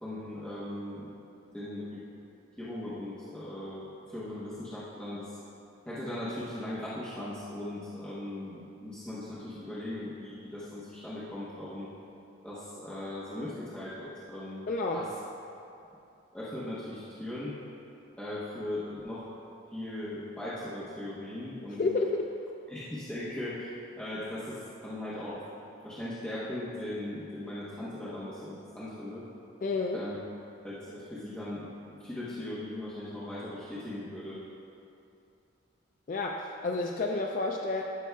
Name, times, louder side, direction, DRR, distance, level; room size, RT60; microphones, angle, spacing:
voice 1, 0.0-1.1 1.5-2.0 2.6-5.4 5.9-11.9 12.4-15.1 16.3-17.5 18.2-19.3 19.7-21.8 22.7-25.5 25.8-29.2 29.9-30.2 30.6-34.4, left 1 dB, 5° left, -11 dB, 0.9 m, -39 dB
voice 2, 14.7-15.0 21.8-22.2 29.6-30.0 36.1-37.8, left 3 dB, 40° left, 1 dB, 0.3 m, -30 dB
12.5 x 6.1 x 2.3 m, 2.6 s
head